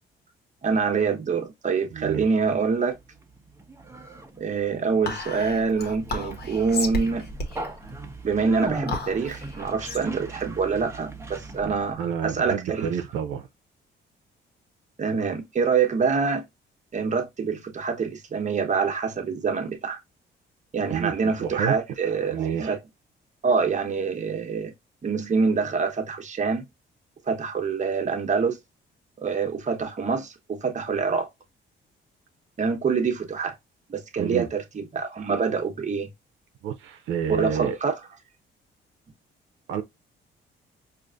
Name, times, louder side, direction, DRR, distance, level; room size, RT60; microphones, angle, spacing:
voice 1, 0.6-2.9 4.4-7.3 8.2-12.9 15.0-16.4 16.9-20.0 20.7-22.8 23.4-24.7 25.0-26.6 27.3-28.6 29.2-31.3 32.6-33.5 33.9-36.1 37.3-38.0, right 5 dB, 35° right, 1.0 m, -25 dB
voice 2, 1.9-2.2 11.6-13.4 20.9-21.1 21.4-21.7 22.3-22.8 34.2-34.5 36.6-37.8 39.7-39.8, right 8 dB, 85° right, 0.6 m, -29 dB
Conversation, 2.6-11.9, right 3 dB, 15° right, 0.8 m, -38 dB
Whispering, 5.0-11.7, left 2 dB, 55° left, 1.2 m, -34 dB
5.0 x 2.5 x 2.4 m
cardioid pair, 90°, 20 cm